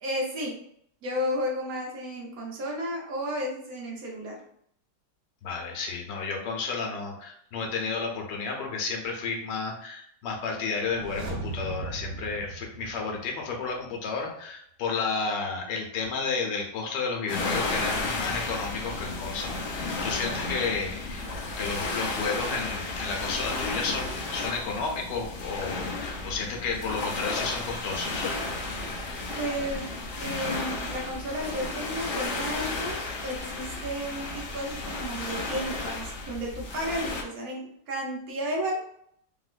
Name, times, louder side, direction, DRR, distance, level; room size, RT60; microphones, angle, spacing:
voice 1, 0.0-0.5 1.0-4.4 29.4-29.9 30.2-38.8, equal, 65° right, -1 dB, 1.1 m, -33 dB
voice 2, 5.4-21.3 21.6-28.3, left 4 dB, 85° left, 1 dB, 1.4 m, -32 dB
sound 1, 10.8-13.7 14.0-14.1, right 3 dB, 85° right, 1.2 m, -38 dB
sound 2, 17.3-37.2, left 3 dB, 65° left, 0.5 m, -33 dB
3.0 x 2.8 x 2.4 m, 0.69 s
omnidirectional pair, 1.8 m